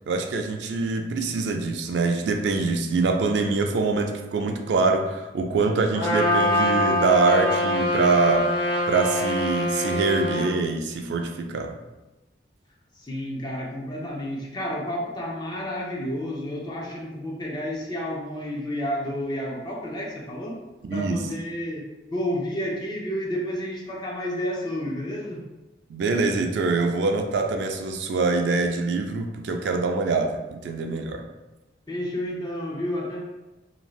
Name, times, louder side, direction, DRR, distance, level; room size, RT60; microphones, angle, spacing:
voice 1, 0.1-8.5 8.9-11.7 20.8-21.2 25.9-31.2, right 3 dB, 75° right, 4 dB, 0.3 m, -24 dB
Trumpet, 5.9-10.5, left 1 dB, 70° left, 0.6 m, -24 dB
voice 2, 12.9-20.6 20.9-25.4 31.9-33.2, equal, 25° left, -2 dB, 0.5 m, -31 dB
3.1 x 2.5 x 2.3 m, 1.1 s
head